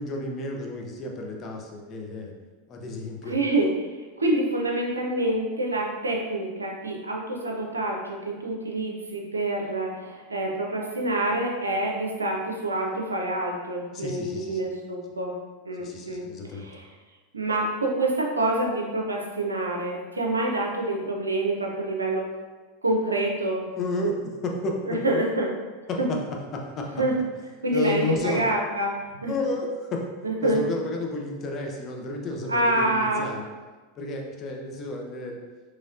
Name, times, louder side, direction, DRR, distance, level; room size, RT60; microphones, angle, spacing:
voice 1, 0.0-2.3 2.7-3.3 13.9-14.6 15.8-16.7 23.8-25.2 25.9-26.2 26.5-26.9 27.7-28.4 29.3-30.0 30.4-33.4 34.0-35.4, left 2 dB, 35° left, 1 dB, 0.6 m, -31 dB
voice 2, 3.2-15.3 15.7-16.9 17.3-22.3 22.8-23.7 24.9-25.5 26.0-26.1 27.0-27.2 27.6-29.3 30.2-30.6 32.5-33.3, right 1 dB, 90° right, 0 dB, 0.5 m, -27 dB
4.1 x 3.1 x 2.4 m, 1.3 s
figure-of-eight pair, 90°, 0 cm